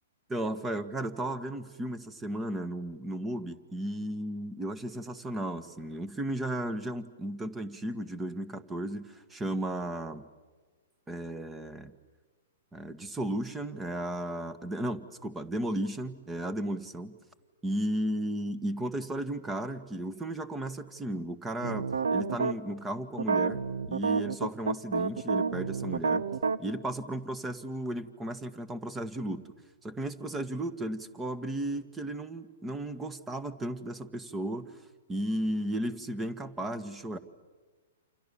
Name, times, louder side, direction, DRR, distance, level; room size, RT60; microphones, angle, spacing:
voice 1, 0.3-10.2 11.1-11.9 12.7-17.2 17.6-26.3 26.6-29.4 29.8-34.7 35.1-37.2, right 1 dB, 15° right, 13 dB, 1.8 m, -34 dB
sound 1, 21.6-22.5 23.2-26.6, right 5 dB, 75° right, 1.1 m, -29 dB
29.0 x 28.0 x 7.2 m, 1.4 s
hypercardioid pair, 115°, 0 cm